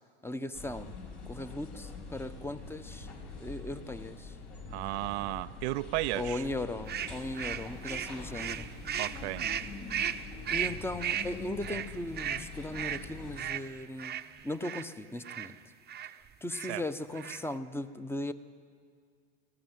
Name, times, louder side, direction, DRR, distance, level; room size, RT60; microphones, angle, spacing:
voice 1, 0.2-0.9 1.3-3.1 3.4-4.4 6.1-8.7 10.5-14.2 14.4-15.6 16.4-18.3, left 1 dB, 5° left, 12 dB, 0.9 m, -37 dB
sound 1, 0.5-13.4, left 4 dB, 65° left, 5.3 m, -44 dB
voice 2, 4.7-6.4 8.9-9.5 16.7-16.8, right 19 dB, 80° right, 12 dB, 0.5 m, -34 dB
sound 2, 6.9-14.9 15.2-15.5 15.9-16.1 16.5-16.8 17.1-17.6, right 9 dB, 30° right, 0.8 m, -36 dB
19.0 x 15.0 x 9.3 m, 2.1 s
hypercardioid pair, 90°, 33 cm